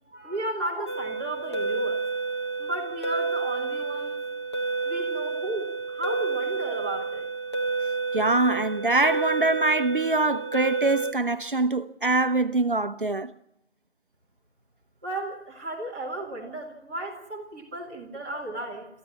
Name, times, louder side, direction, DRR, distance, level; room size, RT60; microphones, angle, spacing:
voice 1, 0.1-2.0 2.6-4.2 4.8-7.3 15.0-18.9, right 1 dB, 10° right, 1.9 m, -34 dB
sound 1, 0.9-11.1, right 4 dB, 25° left, 1.2 m, -30 dB
voice 2, 8.1-13.3, right 2 dB, 50° right, 0.9 m, -24 dB
28.0 x 14.5 x 7.4 m
figure-of-eight pair, 165°, 34 cm